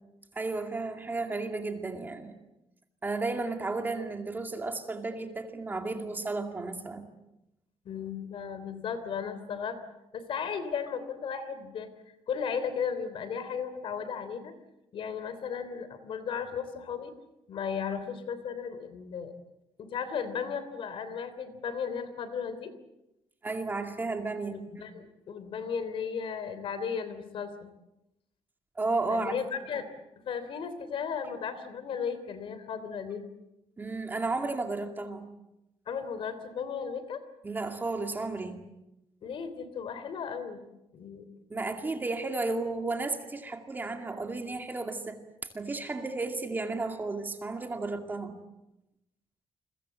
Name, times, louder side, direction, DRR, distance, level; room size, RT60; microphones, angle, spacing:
voice 1, 0.4-2.4 3.0-7.1 23.4-24.6 28.8-29.3 33.8-35.3 37.4-38.7 41.5-48.4, right 3 dB, 20° right, 5 dB, 2.3 m, -33 dB
voice 2, 7.8-9.8 10.1-11.9 12.3-14.5 14.9-17.1 17.5-19.3 19.8-22.7 24.5-27.7 29.1-29.9 30.2-33.2 35.9-37.2 39.2-40.6 40.9-41.2, left 6 dB, 55° left, 12 dB, 3.3 m, -35 dB
29.0 x 23.0 x 7.6 m, 0.90 s
wide cardioid pair, 175°, 11 cm